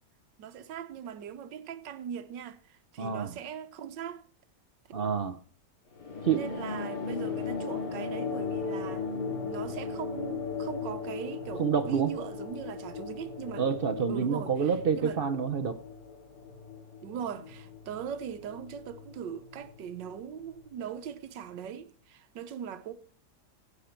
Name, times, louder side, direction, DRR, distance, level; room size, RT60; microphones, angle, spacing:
voice 1, 0.4-4.2 6.3-9.1 9.4-13.7 14.1-14.5 15.0-15.2 17.0-22.9, right 8 dB, 90° right, 1.5 m, -40 dB
voice 2, 3.0-3.4 4.9-5.4 6.2-6.5 11.6-12.1 13.6-15.8, right 6 dB, 60° right, 0.5 m, -28 dB
sound 1, 6.0-20.9, left 5 dB, 70° left, 2.9 m, -38 dB
16.5 x 8.3 x 4.4 m
omnidirectional pair, 1.9 m